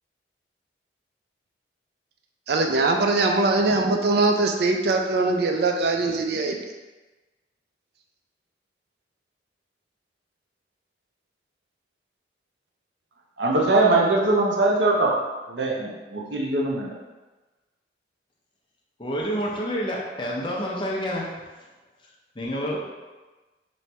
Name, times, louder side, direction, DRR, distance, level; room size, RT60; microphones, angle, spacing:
voice 1, 2.5-6.6, right 3 dB, 60° right, 3 dB, 0.4 m, -22 dB
voice 2, 13.4-15.1 15.5-16.9, right 2 dB, 90° right, -1 dB, 0.7 m, -21 dB
voice 3, 19.0-21.4 22.4-22.9, equal, 30° left, -2 dB, 0.6 m, -28 dB
3.1 x 2.7 x 4.4 m, 1.2 s
head